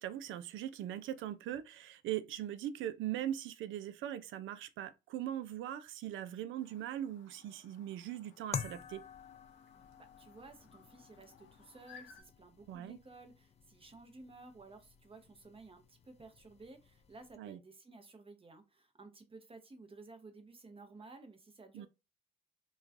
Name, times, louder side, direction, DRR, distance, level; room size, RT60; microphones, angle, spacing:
voice 1, 0.0-9.0 12.7-13.0 17.4-17.6 21.7-21.9, right 11 dB, 70° right, 0.4 m, -40 dB
Chirp tweet, 6.6-12.2, left 6 dB, 65° left, 0.7 m, -61 dB
sound 1, 8.5-17.4, left 7 dB, 30° left, 0.4 m, -49 dB
voice 2, 10.0-21.9, right 3 dB, 25° right, 0.8 m, -55 dB
3.1 x 2.3 x 2.4 m
supercardioid pair, 55°, 21 cm